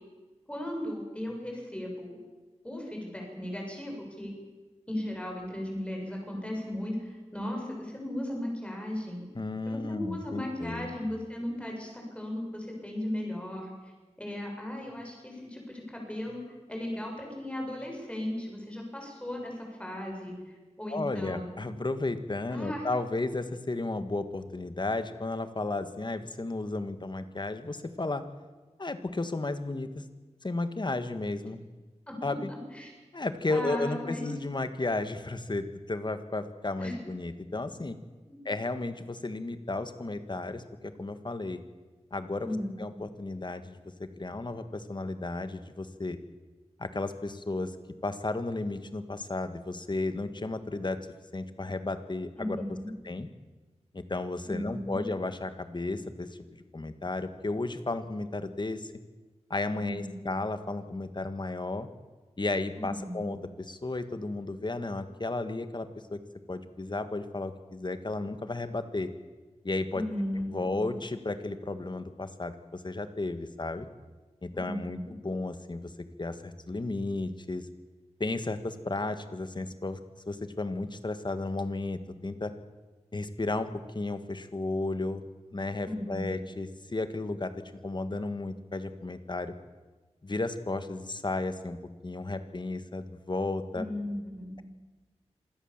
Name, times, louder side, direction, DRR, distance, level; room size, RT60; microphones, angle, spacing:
voice 1, 0.5-2.2 2.6-4.3 4.9-9.2 9.7-13.7 14.2-16.4 16.7-21.5 22.5-22.8 32.1-32.9 33.5-34.2 36.8-37.0 38.3-38.4 42.4-42.8 52.4-52.9 54.5-55.0 59.7-60.2 62.8-63.3 69.9-70.9 74.5-75.1 85.8-86.3 93.7-94.6, left 1 dB, 10° left, 0 dB, 7.7 m, -36 dB
voice 2, 9.3-10.9 20.9-28.2 28.8-30.0 30.4-31.6 32.2-32.5 33.1-38.0 38.5-41.6 42.1-46.2 46.8-47.8 48.0-51.0 51.3-52.6 53.0-53.3 53.9-58.9 59.5-61.9 62.4-66.2 66.5-69.1 69.6-70.0 70.5-73.9 74.4-75.9 76.2-77.7 78.2-80.0 80.3-82.5 83.1-85.2 85.5-87.5 87.8-89.5 90.2-91.8 92.0-93.9, left 2 dB, 40° left, 10 dB, 1.7 m, -33 dB
26.5 x 17.0 x 7.4 m, 1.2 s
wide cardioid pair, 75°, 12 cm